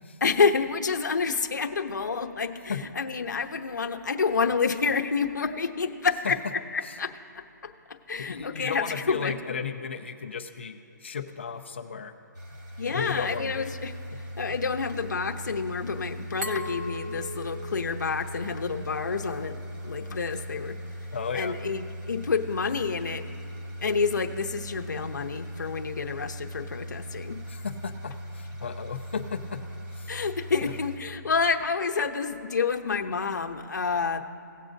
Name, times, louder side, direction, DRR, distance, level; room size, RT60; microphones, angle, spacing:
voice 1, 0.2-9.4 12.8-13.9 14.4-20.8 21.3-23.3 23.8-27.4 30.1-34.2, left 5 dB, 70° left, 5 dB, 0.9 m, -29 dB
voice 2, 8.3-12.1 12.9-13.7 21.1-21.5 27.5-29.6 29.9-30.1 30.6-30.7, left 6 dB, 35° left, 3 dB, 0.6 m, -35 dB
sound 1, 12.3-31.0, equal, 65° right, 2.4 m, -39 dB
Glass, 16.4-19.2, left 1 dB, 45° right, 1.4 m, -39 dB
18.0 x 7.5 x 2.6 m, 2.8 s
hypercardioid pair, 180°, 10 cm